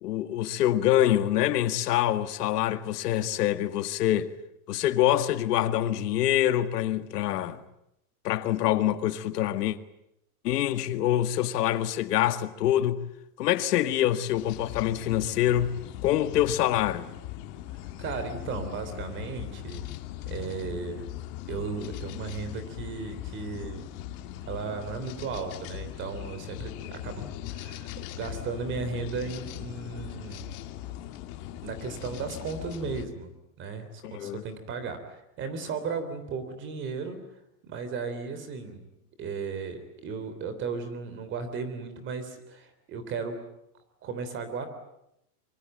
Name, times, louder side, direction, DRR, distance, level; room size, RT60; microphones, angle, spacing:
voice 1, 0.0-4.3 4.7-7.6 8.2-9.8 10.4-13.0 13.4-15.7 16.0-17.1 34.0-34.4, left 12 dB, 85° left, 2.0 m, -25 dB
sound 1, 14.4-33.1, left 13 dB, 40° left, 1.9 m, -40 dB
voice 2, 18.0-19.8 20.3-21.1 21.5-23.9 24.5-30.5 31.6-33.3 33.6-37.2 37.6-38.8 39.2-43.4 44.0-44.7, right 5 dB, 25° right, 3.4 m, -35 dB
24.5 x 24.0 x 9.1 m
supercardioid pair, 175°, 46 cm